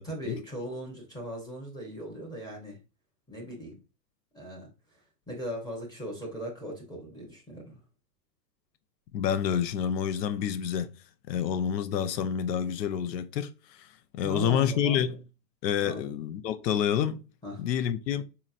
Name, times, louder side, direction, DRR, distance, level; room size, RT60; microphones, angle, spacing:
voice 1, 0.0-2.8 3.3-3.8 4.3-5.0 5.3-7.8 14.2-15.1 15.8-16.0 17.4-17.6, equal, 10° left, 0.7 m, -38 dB
voice 2, 9.1-10.9 11.3-15.2 15.6-17.2 17.6-18.2, left 9 dB, 75° left, 0.6 m, -28 dB
4.2 x 2.9 x 2.4 m
hypercardioid pair, 130°, 49 cm